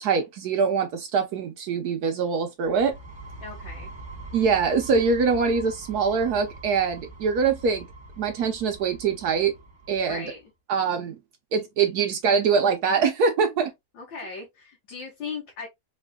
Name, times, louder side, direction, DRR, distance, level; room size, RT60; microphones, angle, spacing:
voice 1, 0.0-2.9 4.3-7.9 8.2-9.5 9.9-10.2 10.7-11.2 11.5-13.7, right 5 dB, 65° right, 1.0 m, -23 dB
sound 1, 2.7-10.3, right 2 dB, 15° right, 1.1 m, -43 dB
voice 2, 3.4-3.9 10.1-10.5 13.9-15.7, left 5 dB, 70° left, 1.8 m, -38 dB
4.4 x 3.2 x 2.2 m
omnidirectional pair, 2.1 m